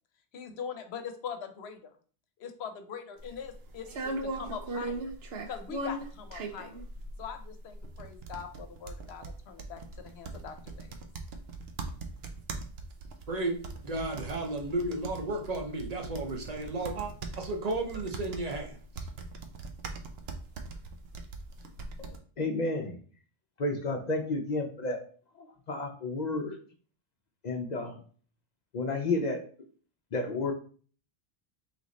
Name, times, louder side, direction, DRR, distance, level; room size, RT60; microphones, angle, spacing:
voice 1, 0.3-2.0 2.4-5.1 5.5-6.8 7.2-10.9, left 7 dB, 85° left, 8 dB, 0.9 m, -42 dB
sound 1, 3.2-22.2, right 2 dB, 75° right, 0.8 m, -40 dB
voice 2, 13.8-17.1 17.4-19.1, right 2 dB, 45° right, 2 dB, 0.8 m, -33 dB
voice 3, 22.4-23.0 23.6-25.0 25.7-26.6 27.4-27.9 28.7-29.4 30.1-30.5, left 2 dB, 50° left, 3 dB, 0.6 m, -31 dB
3.4 x 3.1 x 3.8 m, 0.43 s
omnidirectional pair, 1.1 m